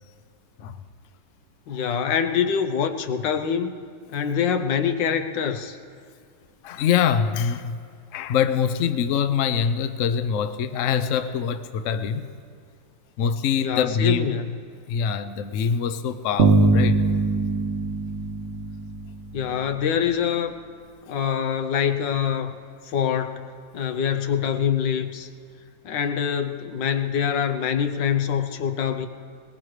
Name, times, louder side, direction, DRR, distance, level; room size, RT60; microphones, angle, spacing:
voice 1, 1.7-3.7 4.1-5.8 13.6-14.6 19.3-20.5 21.1-22.5 22.9-23.4 23.7-25.3 25.8-29.1, left 7 dB, 80° left, 8 dB, 1.5 m, -25 dB
voice 2, 6.6-7.8 8.1-12.3 13.2-14.3 14.9-17.0, left 7 dB, 60° left, 9 dB, 0.8 m, -24 dB
Bass guitar, 16.4-19.5, right 3 dB, 65° right, 1.6 m, -22 dB
21.0 x 20.0 x 3.2 m, 2.3 s
omnidirectional pair, 1.9 m